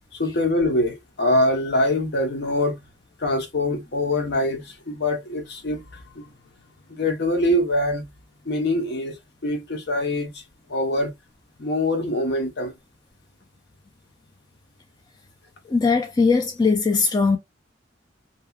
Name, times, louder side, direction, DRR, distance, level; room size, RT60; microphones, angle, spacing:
voice 1, 0.1-2.8 3.2-6.3 6.9-8.1 8.5-9.2 9.4-10.4 10.7-11.1 11.6-12.8, left 1 dB, 60° left, 0.8 m, -24 dB
voice 2, 15.7-17.4, left 4 dB, 20° left, 0.4 m, -20 dB
2.8 x 2.3 x 2.3 m
head